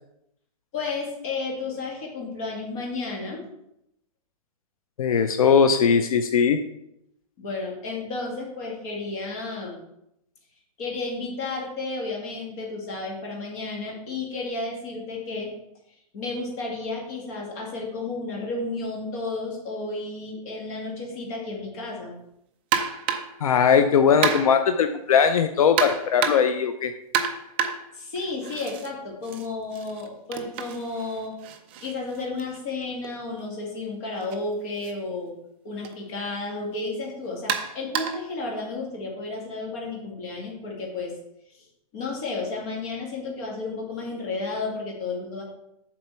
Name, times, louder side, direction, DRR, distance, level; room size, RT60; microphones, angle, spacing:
voice 1, 0.7-3.4 7.4-9.8 10.8-15.5 16.1-22.1 27.9-31.4 31.8-35.3 35.6-41.1 41.5-41.7 41.9-45.4, left 3 dB, 25° left, -2 dB, 2.0 m, -32 dB
voice 2, 5.0-6.6 23.4-26.9, left 6 dB, 70° left, 8 dB, 0.7 m, -19 dB
sound 1, 22.7-23.4 24.2-24.7 25.8-26.6 27.1-28.9 29.2-33.1 34.2-34.4 34.8-34.9 35.8-36.0 37.5-38.3, right 7 dB, 20° right, 0.4 m, -30 dB
7.6 x 4.3 x 6.8 m, 0.81 s
hypercardioid pair, 180°, 19 cm